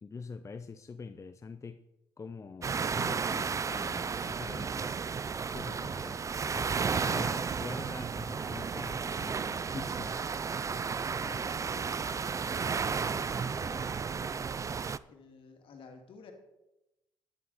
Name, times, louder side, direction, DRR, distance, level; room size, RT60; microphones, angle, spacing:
voice 1, 0.0-1.8 2.2-5.0 5.4-6.2 6.5-10.3, left 5 dB, 30° left, 10 dB, 0.6 m, -44 dB
sound 1, 2.6-15.0, right 5 dB, 35° right, 0.4 m, -33 dB
voice 2, 11.2-14.5 15.1-16.3, left 4 dB, 65° left, 4 dB, 2.1 m, -52 dB
11.0 x 10.5 x 4.1 m, 0.93 s
supercardioid pair, 65°, 10 cm